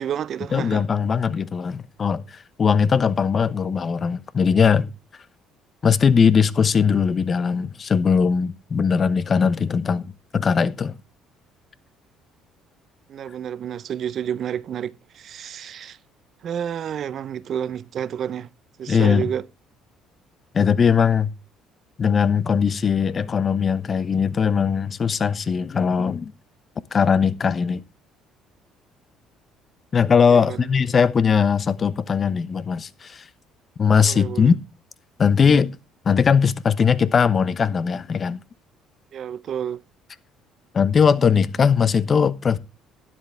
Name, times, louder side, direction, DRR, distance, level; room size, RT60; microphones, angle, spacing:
voice 1, 0.0-0.8 13.1-16.0 16.4-18.5 18.8-19.4 30.3-30.7 34.0-34.5 39.1-39.8, right 9 dB, 55° right, 0.7 m, -30 dB
voice 2, 0.5-4.9 5.8-10.9 18.9-19.3 20.5-21.3 22.0-26.3 26.9-27.8 29.9-33.3 33.8-34.6 35.2-35.8 36.0-38.4 40.7-42.6, left 6 dB, 40° left, 1.0 m, -20 dB
12.0 x 10.5 x 3.4 m
hypercardioid pair, 65°, 0 cm